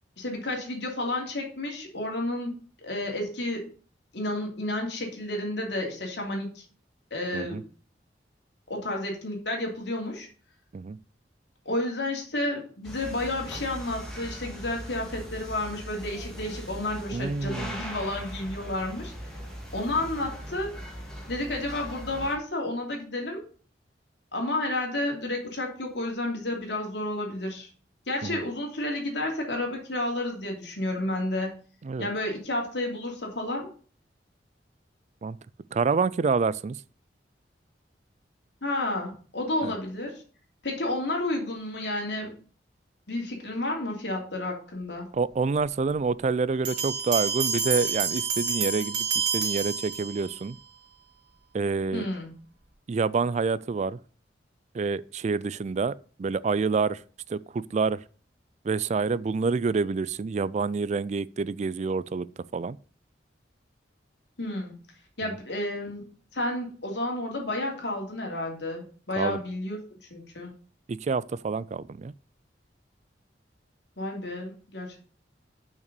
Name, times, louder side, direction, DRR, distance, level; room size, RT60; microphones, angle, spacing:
voice 1, 0.2-3.6 4.1-6.6 7.1-7.6 8.7-10.3 11.6-19.1 19.7-20.8 21.3-23.4 24.3-27.7 28.1-31.5 32.0-33.7 38.6-40.2 40.6-42.3 43.1-45.1 51.9-52.3 64.4-64.8 65.2-66.0 66.3-69.8 70.1-70.5 74.0-75.0, left 1 dB, 70° left, 3.0 m, -31 dB
sound 1, 12.8-22.4, equal, 5° left, 2.2 m, -40 dB
voice 2, 17.1-17.8 28.2-28.4 31.8-32.1 35.2-35.4 35.7-36.8 39.6-39.7 45.1-50.6 51.5-52.1 52.9-54.0 54.7-57.0 57.3-58.0 58.6-62.3 62.5-62.8 69.2-69.4 70.9-72.1, right 4 dB, 40° right, 0.3 m, -27 dB
sound 2, 46.7-50.4, right 6 dB, 80° right, 2.6 m, -28 dB
6.6 x 5.9 x 6.8 m
head